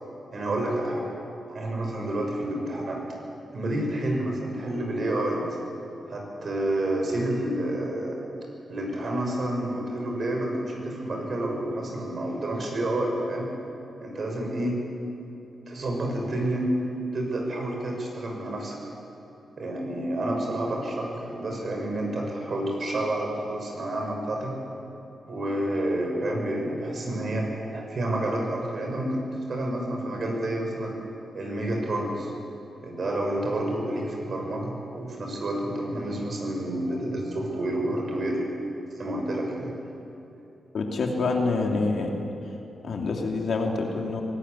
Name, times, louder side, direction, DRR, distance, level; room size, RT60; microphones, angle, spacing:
voice 1, 0.3-1.0 1.5-3.0 3.5-5.6 6.1-8.2 8.7-13.5 14.0-14.7 15.7-16.7 17.1-18.7 19.6-24.5 25.3-29.2 29.5-30.9 31.3-32.3 32.8-38.4 39.0-39.9, right 1 dB, 60° right, 0 dB, 6.5 m, -29 dB
voice 2, 40.7-42.1 42.8-44.2, left 3 dB, 70° left, 1 dB, 2.8 m, -26 dB
22.5 x 13.5 x 9.9 m, 2.9 s
supercardioid pair, 50°, 0 cm